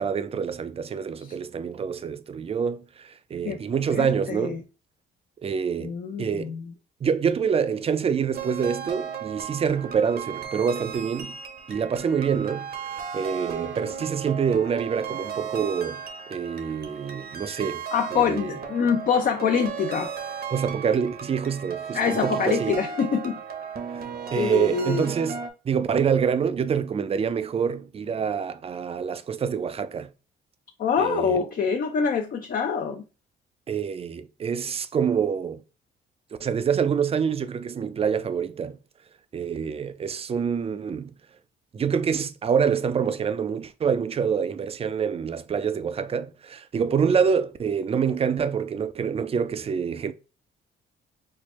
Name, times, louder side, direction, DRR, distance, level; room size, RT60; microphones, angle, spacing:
voice 1, 0.0-4.6 5.4-6.5 7.0-11.4 11.7-16.0 16.3-17.9 18.1-18.6 20.5-22.8 23.9-24.1 24.3-25.4 25.6-30.1 31.0-31.4 33.7-35.6 36.4-38.8 39.3-41.1 41.7-50.1, right 7 dB, 30° right, 0.4 m, -26 dB
voice 2, 3.9-4.6 5.8-6.7 17.9-20.1 21.9-23.4 24.3-25.0 30.8-33.0, left 6 dB, 45° left, 0.5 m, -25 dB
sound 1, 8.3-25.5, right 7 dB, 50° right, 0.8 m, -35 dB
4.5 x 2.1 x 3.0 m
cardioid pair, 90°, 20 cm